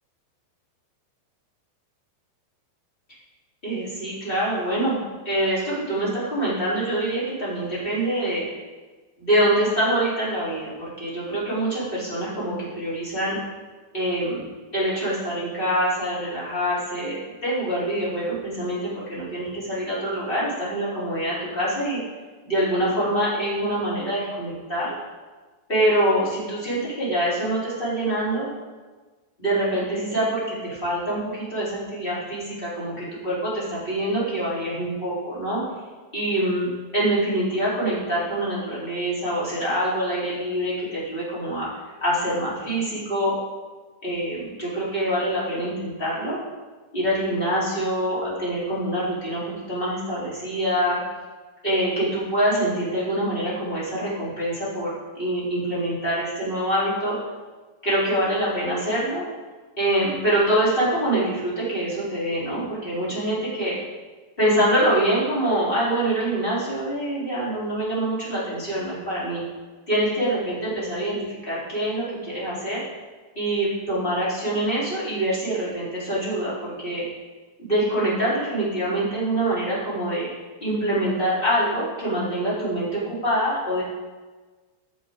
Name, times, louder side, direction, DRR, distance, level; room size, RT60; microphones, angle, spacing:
voice 1, 3.6-8.4 9.2-13.4 13.9-14.5 14.7-22.0 22.4-25.0 25.7-28.5 29.4-35.6 36.1-36.7 36.9-41.7 42.0-43.3 44.0-46.4 46.9-51.0 51.6-57.2 57.8-59.3 59.8-63.8 64.4-69.4 69.9-72.8 73.4-77.0 77.6-80.3 80.6-83.8, right 1 dB, 15° left, -9 dB, 3.8 m, -25 dB
14.0 x 8.3 x 4.0 m, 1.3 s
omnidirectional pair, 4.9 m